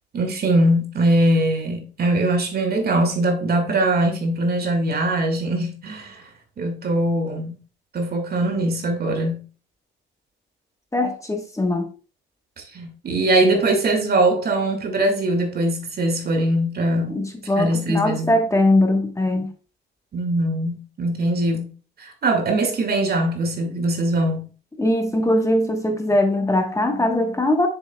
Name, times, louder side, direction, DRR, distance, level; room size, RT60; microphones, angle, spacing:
voice 1, 0.1-6.2 6.6-7.6 7.9-9.5 12.7-17.2 17.6-18.3 20.1-21.7 22.0-24.4, right 1 dB, 50° right, 1.9 m, -21 dB
voice 2, 10.9-11.9 17.1-19.5 24.8-27.7, left 1 dB, 15° left, 1.2 m, -21 dB
7.0 x 6.8 x 2.2 m
cardioid pair, 90°, 20 cm